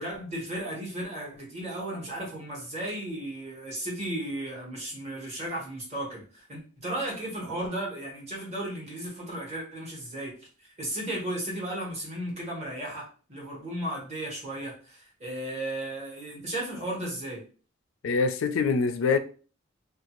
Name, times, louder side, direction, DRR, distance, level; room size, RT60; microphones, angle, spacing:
voice 1, 0.0-10.3 10.6-17.4, right 1 dB, 35° right, 1.2 m, -35 dB
voice 2, 18.0-19.2, left 4 dB, 80° left, 0.4 m, -24 dB
2.6 x 2.3 x 3.0 m
head